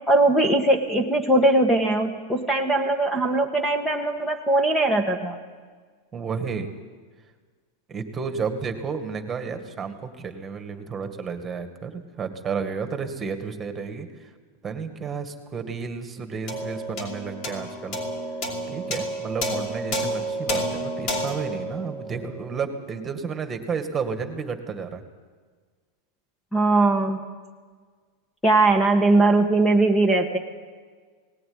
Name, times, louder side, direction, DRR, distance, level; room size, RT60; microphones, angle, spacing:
voice 1, 0.1-5.4 26.5-27.2 28.4-30.4, right 2 dB, 10° left, 5 dB, 1.5 m, -20 dB
voice 2, 6.1-6.7 7.9-14.3 14.6-18.0 18.7-25.0, right 5 dB, 15° right, 7 dB, 2.0 m, -32 dB
sound 1, 16.5-23.1, equal, 45° left, 5.0 m, -30 dB
19.0 x 18.5 x 9.8 m, 1.5 s
supercardioid pair, 155°, 0 cm